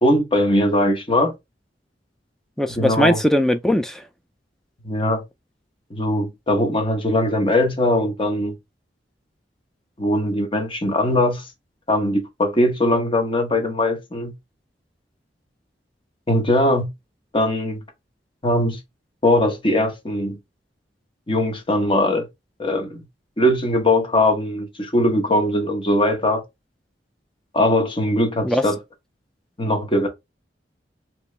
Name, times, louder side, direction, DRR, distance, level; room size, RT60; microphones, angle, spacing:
voice 1, 0.0-1.3 2.8-3.2 4.8-5.2 5.9-8.6 10.0-11.5 11.9-14.3 16.3-16.9 17.3-17.8 18.4-18.8 19.2-20.4 21.3-22.3 22.6-23.0 23.4-26.4 27.5-28.8 29.6-30.1, left 1 dB, 30° left, 1.0 m, -20 dB
voice 2, 2.6-4.0 28.4-28.6, equal, 5° left, 0.3 m, -19 dB
3.0 x 2.9 x 3.2 m
head